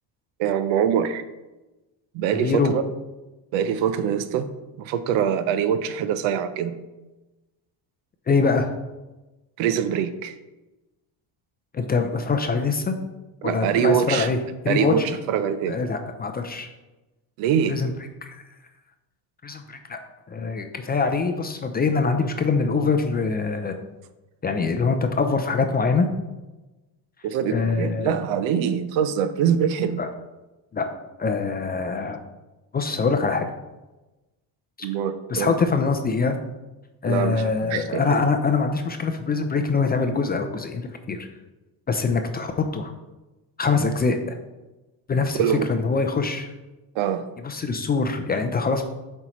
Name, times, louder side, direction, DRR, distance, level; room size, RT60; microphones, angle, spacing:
voice 1, 0.4-1.2 2.1-2.8 3.5-4.5 4.8-6.8 9.6-10.4 13.4-14.3 14.7-15.8 17.4-17.8 27.2-30.0 34.8-35.5 37.0-38.0 45.4-45.6 46.9-47.3, right 8 dB, 75° right, 12 dB, 0.6 m, -24 dB
voice 2, 2.3-2.7 8.3-8.7 11.7-12.9 13.4-14.4 14.6-14.9 15.7-16.7 17.7-17.9 18.3-18.4 19.4-20.0 20.3-23.8 24.4-26.1 27.5-28.1 30.0-30.1 30.7-30.9 31.2-32.2 32.7-33.5 35.3-36.4 37.0-41.3 41.9-42.9 43.6-44.4 45.1-45.4 45.7-46.5 47.4-48.8, left 4 dB, 20° left, 5 dB, 0.4 m, -24 dB
7.5 x 4.5 x 3.0 m, 1.1 s
cardioid pair, 110°, 46 cm